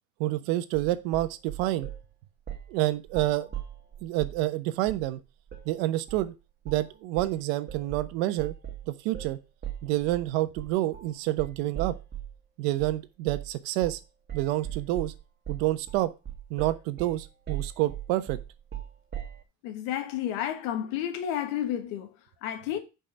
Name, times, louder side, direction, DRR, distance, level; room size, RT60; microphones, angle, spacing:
voice 1, 0.2-1.9 2.7-3.5 4.0-5.2 5.6-6.3 6.6-8.5 8.9-9.4 9.8-11.9 12.6-14.0 14.3-15.1 15.5-16.1 16.5-18.4, right 16 dB, 85° right, 1.2 m, -28 dB
sound 1, 0.7-2.0 2.5-2.7 3.1-4.4 4.9-5.1 5.5-5.7 6.1-6.3 6.6-6.9 7.2-12.4 12.8-13.0 13.3-13.5 13.8-14.0 14.3-19.4, right 10 dB, 25° right, 1.7 m, -39 dB
voice 2, 19.6-22.8, left 10 dB, 85° left, 1.6 m, -31 dB
6.4 x 5.4 x 6.7 m
cardioid pair, 135°, 40 cm